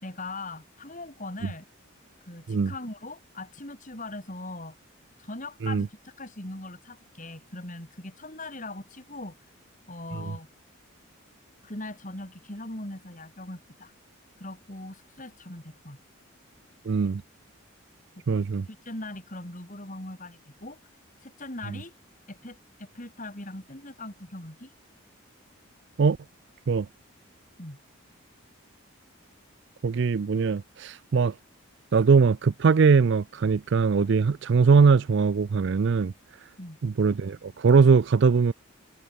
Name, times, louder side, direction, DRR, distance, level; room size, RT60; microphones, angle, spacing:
voice 1, 0.0-1.7 2.3-4.8 5.2-9.4 9.9-10.5 11.6-13.9 14.4-16.0 18.2-20.8 21.2-21.9 22.3-24.7 27.6-27.8 36.6-36.8, left 2 dB, 35° left, 4.2 m, -40 dB
voice 2, 16.9-17.2 18.3-18.6 26.0-26.2 26.7-26.9 29.8-31.3 31.9-36.1 36.8-38.5, right 5 dB, 55° right, 0.4 m, -21 dB
head